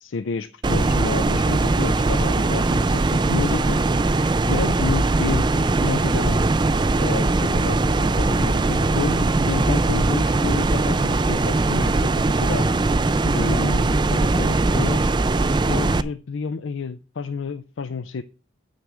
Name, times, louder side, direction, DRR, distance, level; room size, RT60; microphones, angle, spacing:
voice 1, 0.0-3.8 4.4-6.4 7.0-12.7 13.3-15.1 15.7-18.2, left 5 dB, 75° left, 12 dB, 0.5 m, -30 dB
sound 1, 0.6-16.0, right 2 dB, 25° right, 0.4 m, -20 dB
8.5 x 6.4 x 6.2 m, 0.36 s
head